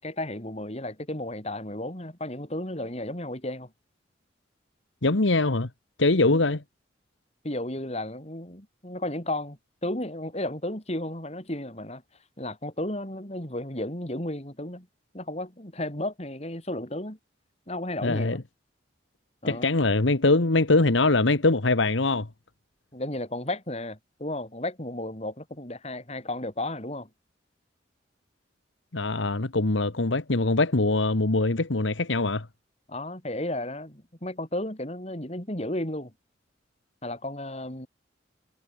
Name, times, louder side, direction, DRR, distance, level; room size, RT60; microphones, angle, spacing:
voice 1, 0.0-3.7 7.4-12.0 12.4-14.9 15.1-17.2 17.7-18.4 19.4-19.7 22.9-27.1 32.9-36.1 37.0-37.9, left 1 dB, 35° left, 4.9 m, -33 dB
voice 2, 5.0-5.7 6.0-6.6 18.0-18.4 19.5-22.3 28.9-32.5, left 2 dB, 80° left, 1.5 m, -23 dB
head